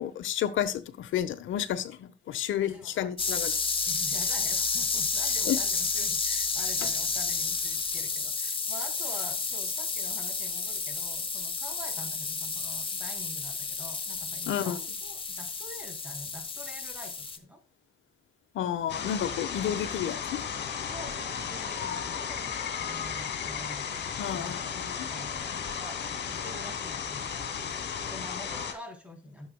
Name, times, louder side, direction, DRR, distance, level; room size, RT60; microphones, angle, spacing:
voice 1, 0.0-3.5 5.5-5.6 14.5-14.8 18.5-20.4 24.2-25.1, left 10 dB, 75° left, 1.2 m, -31 dB
voice 2, 2.6-3.1 3.8-17.6 20.7-24.6 25.1-29.5, left 1 dB, 5° right, 3.6 m, -46 dB
sound 1, 3.2-17.4, left 4 dB, 25° left, 1.4 m, -31 dB
sound 2, 18.9-28.7, left 7 dB, 55° left, 2.5 m, -34 dB
13.5 x 7.5 x 2.3 m
cardioid pair, 90°, 20 cm